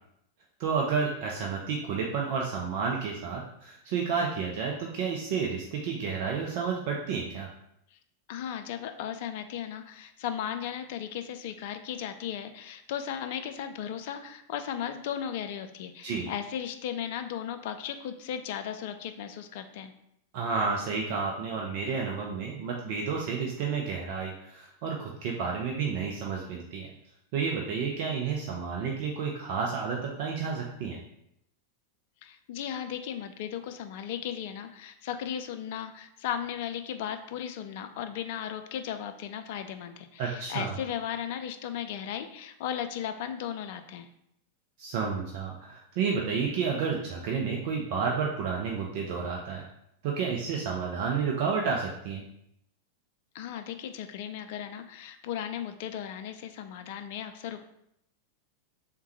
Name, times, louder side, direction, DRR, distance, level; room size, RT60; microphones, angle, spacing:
voice 1, 0.6-7.5 16.0-16.3 20.3-26.9 27.3-31.0 40.2-40.8 44.8-49.7 50.0-52.2, right 5 dB, 45° right, -1 dB, 0.4 m, -31 dB
voice 2, 8.3-19.9 32.2-44.1 53.3-57.6, left 9 dB, 50° left, 8 dB, 0.3 m, -36 dB
3.4 x 2.2 x 4.0 m, 0.76 s
figure-of-eight pair, 90°, 0 cm